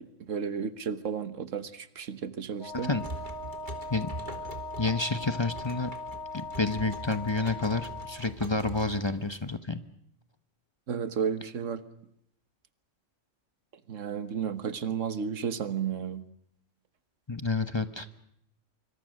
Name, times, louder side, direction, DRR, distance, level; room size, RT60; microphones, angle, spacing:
voice 1, 0.0-2.9 10.9-11.8 13.9-16.2, right 7 dB, 90° right, 12 dB, 1.6 m, -33 dB
Wind instrument woodwind instrument, 2.6-8.3, left 2 dB, 70° left, 2.5 m, -39 dB
sound 1, 2.7-9.5, right 1 dB, 40° right, 2.8 m, -44 dB
voice 2, 4.8-5.9 6.3-9.8 17.3-18.1, left 3 dB, 25° left, 10 dB, 0.9 m, -29 dB
25.5 x 25.0 x 6.4 m, 0.74 s
omnidirectional pair, 1.3 m